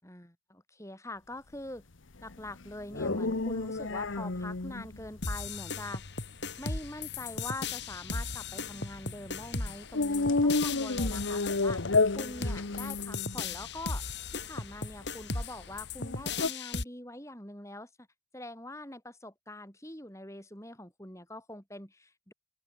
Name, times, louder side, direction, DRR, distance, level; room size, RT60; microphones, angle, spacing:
voice 1, 0.0-1.8 2.2-6.2 6.6-14.0 14.3-17.9 18.3-22.3, left 1 dB, 15° left, 6.3 m, -44 dB
sound 1, 2.2-16.5, left 3 dB, 85° left, 1.1 m, -32 dB
sound 2, 5.2-16.8, left 4 dB, 60° left, 4.1 m, -36 dB
head